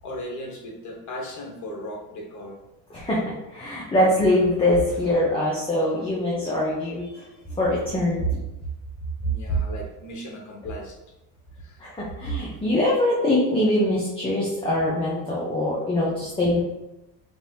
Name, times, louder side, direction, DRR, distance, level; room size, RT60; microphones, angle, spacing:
voice 1, 0.0-2.6 4.0-4.2 7.1-7.3 9.2-11.0 11.6-11.8 12.7-12.8, left 1 dB, 45° left, -1 dB, 1.3 m, -37 dB
voice 2, 2.9-8.4 9.5-9.6 11.8-16.6, left 1 dB, 15° left, -6 dB, 0.8 m, -23 dB
5.4 x 2.6 x 2.7 m, 0.96 s
cardioid pair, 115°, 42 cm